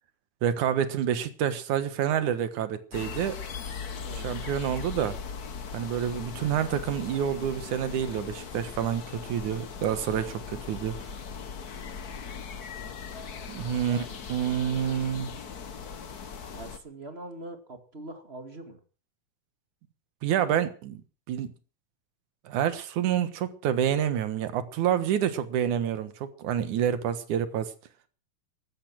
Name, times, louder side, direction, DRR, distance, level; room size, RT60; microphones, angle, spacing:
voice 1, 0.4-3.4 4.2-5.2 5.7-11.0 13.5-15.3 20.2-21.0 21.3-21.5 22.5-27.7, right 9 dB, 70° right, 2.7 m, -28 dB
sound 1, 2.9-16.8, left 6 dB, 90° left, 0.8 m, -39 dB
voice 2, 4.0-4.4 13.8-14.2 16.5-18.8, right 2 dB, 20° right, 2.0 m, -43 dB
15.0 x 13.0 x 6.2 m
omnidirectional pair, 3.8 m